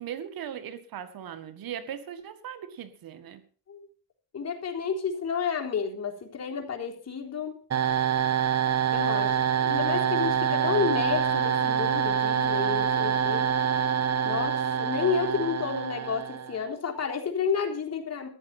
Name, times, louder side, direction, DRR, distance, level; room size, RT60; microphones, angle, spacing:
voice 1, 0.0-3.4, right 9 dB, 70° right, 1.9 m, -38 dB
voice 2, 4.3-7.6 8.9-9.3 9.6-13.5 14.2-18.3, left 6 dB, 45° left, 3.7 m, -30 dB
sound 1, 7.7-16.6, right 8 dB, 45° right, 1.4 m, -26 dB
14.5 x 10.5 x 5.9 m
cardioid pair, 95°, 36 cm